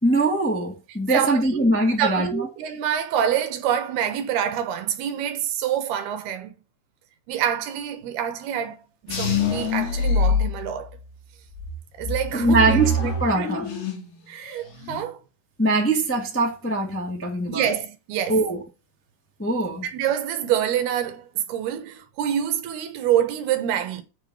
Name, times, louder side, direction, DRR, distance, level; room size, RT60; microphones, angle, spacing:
voice 1, 0.0-2.5 12.3-13.7 15.6-17.6 18.3-18.6 19.4-19.8, right 2 dB, 5° left, 1.1 m, -22 dB
voice 2, 1.1-1.7 2.0-6.5 7.3-8.8 9.0-10.9 12.0-13.5 14.3-15.2 17.5-18.4 19.8-24.0, right 9 dB, 75° right, 3.0 m, -26 dB
sound 1, 9.1-11.1 11.6-14.2 14.5-15.0, left 2 dB, 70° left, 4.9 m, -25 dB
7.7 x 7.1 x 6.5 m
omnidirectional pair, 4.8 m